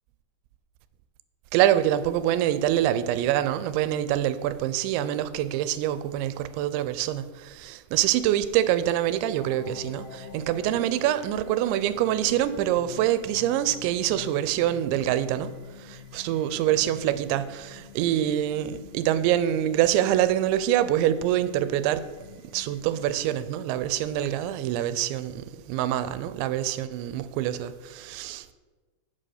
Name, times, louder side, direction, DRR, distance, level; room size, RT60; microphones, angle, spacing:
voice 1, 1.5-22.1 22.5-28.5, right 12 dB, 90° right, 2.9 m, -25 dB
sound 1, 9.4-23.4, left 7 dB, 75° left, 2.8 m, -46 dB
7.8 x 7.7 x 6.5 m
omnidirectional pair, 5.1 m